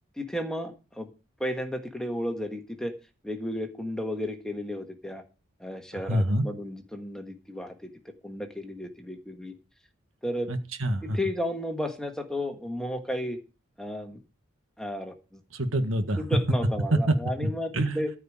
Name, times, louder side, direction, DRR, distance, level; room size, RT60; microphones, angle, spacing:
voice 1, 0.2-1.1 1.4-2.9 3.2-5.2 5.6-7.9 8.2-9.5 10.2-10.5 11.0-13.4 13.8-14.2 14.8-15.4 16.2-18.1, left 1 dB, 5° left, 1.5 m, -33 dB
voice 2, 6.1-6.4 10.5-11.2 15.6-16.2 16.9-17.1 17.4-18.0, right 1 dB, 80° right, 1.6 m, -26 dB
14.0 x 5.0 x 8.6 m
head